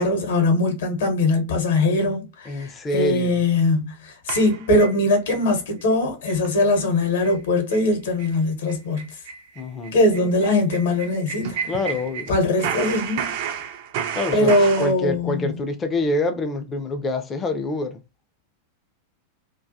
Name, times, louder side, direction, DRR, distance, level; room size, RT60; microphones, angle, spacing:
voice 1, 0.0-9.0 9.9-11.6 12.3-13.3 14.3-15.5, left 2 dB, 60° left, 0.8 m, -21 dB
voice 2, 2.5-3.4 9.6-10.0 11.7-12.3 14.1-18.0, left 2 dB, 20° left, 0.4 m, -26 dB
sound 1, 4.3-5.4 5.8-5.9 6.3-6.5 6.8-6.9 7.2-7.4 7.7-7.9 8.2-8.3 8.7-12.3 12.6-14.9, right 8 dB, 50° right, 0.4 m, -31 dB
2.2 x 2.2 x 2.6 m
figure-of-eight pair, 90°, 0 cm